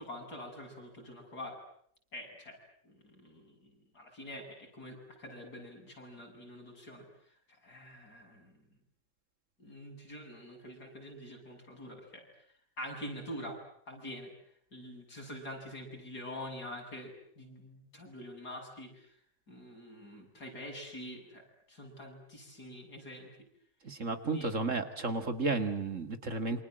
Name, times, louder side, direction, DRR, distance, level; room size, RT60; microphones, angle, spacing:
voice 1, 0.0-1.6 2.1-2.6 2.8-7.1 7.5-8.7 9.6-12.3 12.8-13.6 13.9-14.3 14.7-19.1 19.5-23.3 24.3-24.5, equal, 65° left, 1 dB, 8.4 m, -46 dB
voice 2, 23.8-26.6, right 3 dB, 45° right, 9 dB, 2.3 m, -33 dB
28.0 x 26.0 x 7.7 m, 0.66 s
omnidirectional pair, 1.8 m